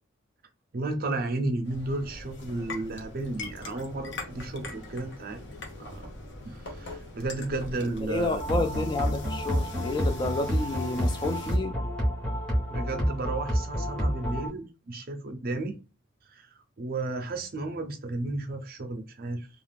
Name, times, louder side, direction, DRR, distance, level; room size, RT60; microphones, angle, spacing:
voice 1, 0.7-5.5 5.8-6.1 6.4-8.4 12.7-15.8 16.3-19.5, right 2 dB, 45° right, 0.5 m, -33 dB
sound 1, 1.6-11.6, left 2 dB, 55° left, 0.7 m, -42 dB
voice 2, 8.1-11.7, left 2 dB, 20° left, 0.3 m, -30 dB
sound 2, 8.4-14.5, equal, 5° left, 0.9 m, -29 dB
2.4 x 2.3 x 3.3 m
head